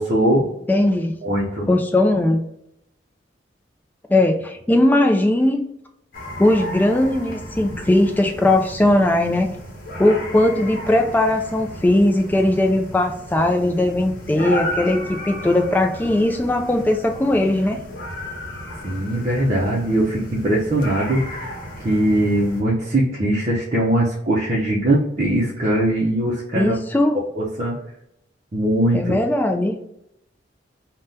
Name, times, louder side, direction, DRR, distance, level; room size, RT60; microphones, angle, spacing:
voice 1, 0.0-0.5 1.2-1.7 18.8-26.8 27.4-27.7 28.5-29.2, right 1 dB, 40° right, -5 dB, 0.6 m, -21 dB
voice 2, 0.7-1.1 1.7-2.4 4.1-5.6 6.4-9.5 10.0-17.8 26.6-27.2 28.9-29.8, left 1 dB, 10° left, 4 dB, 0.3 m, -19 dB
sound 1, 6.1-22.6, equal, 50° left, 0.9 m, -34 dB
3.5 x 2.2 x 2.6 m, 0.79 s
head